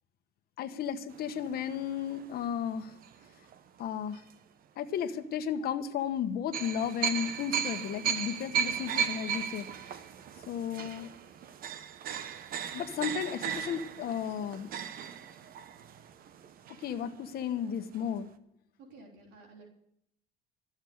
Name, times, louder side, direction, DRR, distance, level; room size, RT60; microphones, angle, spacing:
voice 1, 0.6-2.9 3.8-4.2 4.8-9.7 10.5-11.1 12.7-14.7 16.8-18.3, left 8 dB, 65° left, 9 dB, 1.2 m, -34 dB
sound 1, 1.1-3.6 4.1-4.3 6.5-17.3 17.6-17.7 17.9-18.1, right 8 dB, 60° right, 1.0 m, -36 dB
voice 2, 18.8-19.7, right 3 dB, 85° right, 0 dB, 3.6 m, -52 dB
14.0 x 7.2 x 9.5 m, 0.74 s
cardioid pair, 110°, 17 cm